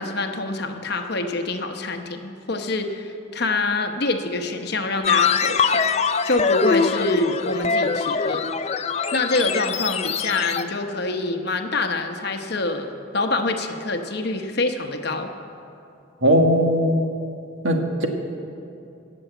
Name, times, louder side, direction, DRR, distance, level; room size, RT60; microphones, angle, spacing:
voice 1, 0.0-5.9 6.2-8.4 9.1-15.3, left 2 dB, 55° left, 6 dB, 1.0 m, -26 dB
sound 1, 5.0-10.6, left 5 dB, 30° left, 0.4 m, -23 dB
voice 2, 16.2-17.1 17.6-18.1, equal, 75° right, 3 dB, 1.5 m, -18 dB
18.0 x 7.1 x 8.0 m, 2.6 s
head